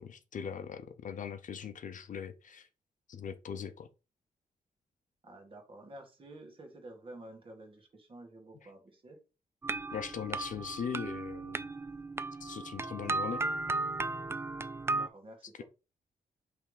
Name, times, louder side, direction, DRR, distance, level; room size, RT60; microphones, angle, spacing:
voice 1, 0.0-2.7 3.1-3.9 9.9-11.6 12.4-13.4, left 7 dB, 55° left, 0.7 m, -40 dB
voice 2, 5.2-9.2 14.9-15.6, right 1 dB, 35° right, 2.0 m, -50 dB
sound 1, 9.6-15.1, right 3 dB, 15° right, 0.3 m, -35 dB
5.7 x 3.5 x 5.0 m
wide cardioid pair, 160°, 15 cm